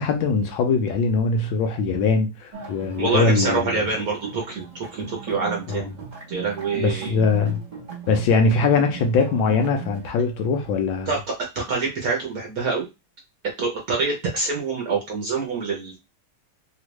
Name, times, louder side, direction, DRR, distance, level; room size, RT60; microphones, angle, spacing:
voice 1, 0.0-3.9 5.7-5.9 6.8-7.6 8.1-11.1, left 4 dB, 75° left, 1.3 m, -21 dB
sound 1, 2.5-10.1, right 6 dB, 30° right, 0.7 m, -37 dB
voice 2, 3.0-5.9 6.3-7.1 11.1-11.2 11.5-12.9 13.6-16.0, right 4 dB, 60° right, 1.0 m, -26 dB
3.4 x 2.4 x 3.0 m
omnidirectional pair, 2.3 m